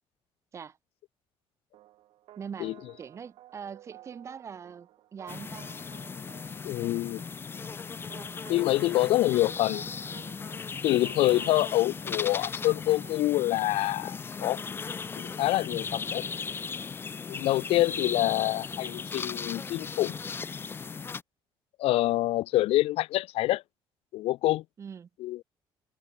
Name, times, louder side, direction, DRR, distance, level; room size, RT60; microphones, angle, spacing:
sound 1, 1.7-13.4, right 14 dB, 65° right, 7.3 m, -54 dB
voice 1, 2.4-2.7 3.0-5.7 18.1-18.6 24.8-25.1, right 7 dB, 30° right, 2.3 m, -42 dB
sound 2, 5.3-21.2, left 5 dB, 20° left, 2.6 m, -37 dB
voice 2, 6.6-7.2 8.5-9.8 10.8-14.6 15.1-16.2 17.3-20.2 21.8-23.6 24.1-24.6 25.2-25.4, left 16 dB, 75° left, 1.2 m, -26 dB
cardioid pair, 175°, 10 cm